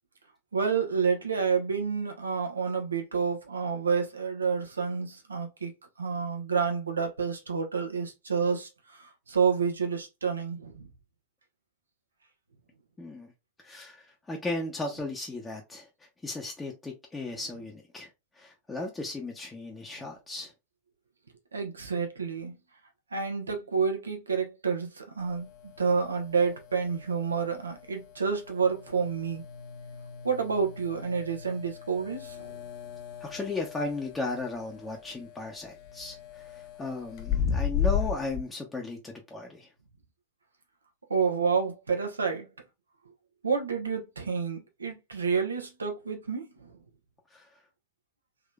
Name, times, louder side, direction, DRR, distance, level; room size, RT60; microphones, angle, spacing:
voice 1, 0.5-5.7 6.0-8.7 9.0-10.9 21.5-22.6 23.1-29.4 30.2-32.5 41.1-42.5 43.4-46.7, right 5 dB, 75° right, 1.0 m, -29 dB
voice 2, 13.0-13.3 13.6-18.1 18.4-20.5 33.2-39.7 47.3-47.5, left 2 dB, 10° left, 0.8 m, -36 dB
sound 1, 25.2-38.4, left 8 dB, 45° left, 0.7 m, -36 dB
3.7 x 3.1 x 2.3 m
figure-of-eight pair, 90°, 0 cm